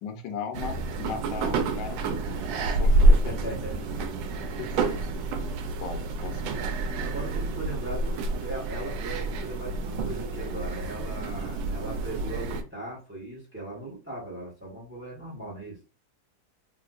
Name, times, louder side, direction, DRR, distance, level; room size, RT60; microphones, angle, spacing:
voice 1, 0.0-2.0 2.6-3.5 4.6-6.5, left 6 dB, 80° left, 5 dB, 1.4 m, -38 dB
sound 1, 0.5-12.6, right 2 dB, 85° right, 1.3 m, -27 dB
voice 2, 2.8-3.8 7.0-15.8, right 2 dB, 10° right, -4 dB, 0.7 m, -38 dB
3.6 x 2.7 x 2.4 m, 0.34 s
omnidirectional pair, 2.0 m